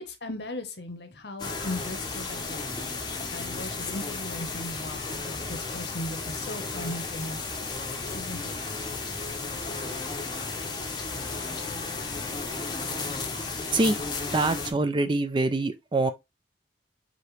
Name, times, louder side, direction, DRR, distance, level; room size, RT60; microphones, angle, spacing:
voice 1, 0.1-3.0 3.3-7.4 8.1-8.5 12.2-12.3, left 1 dB, 60° left, 0.9 m, -38 dB
sound 1, 1.4-14.7, left 3 dB, 20° left, 0.7 m, -34 dB
voice 2, 13.7-16.1, right 2 dB, 25° right, 0.3 m, -25 dB
4.9 x 2.8 x 3.1 m
head